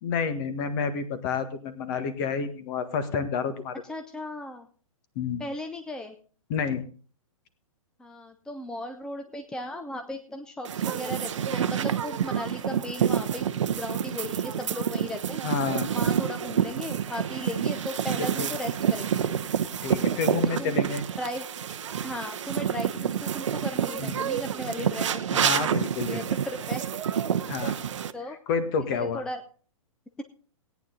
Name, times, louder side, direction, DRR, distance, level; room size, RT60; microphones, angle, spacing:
voice 1, 0.0-3.8 5.1-5.4 6.5-6.8 15.4-15.9 18.2-18.5 19.8-21.0 24.0-24.1 25.3-26.2 27.5-27.8 28.3-29.2, left 5 dB, 35° left, 12 dB, 1.6 m, -29 dB
voice 2, 3.9-4.7 5.4-6.2 8.0-13.4 13.8-15.4 15.9-19.3 20.6-20.8 21.2-21.4 22.0-25.6 26.1-27.0 28.1-28.4 29.1-29.4, left 1 dB, 5° left, 6 dB, 0.7 m, -36 dB
sound 1, 10.7-28.1, right 9 dB, 60° right, 0.8 m, -28 dB
17.0 x 9.5 x 3.9 m, 0.41 s
figure-of-eight pair, 120°, 18 cm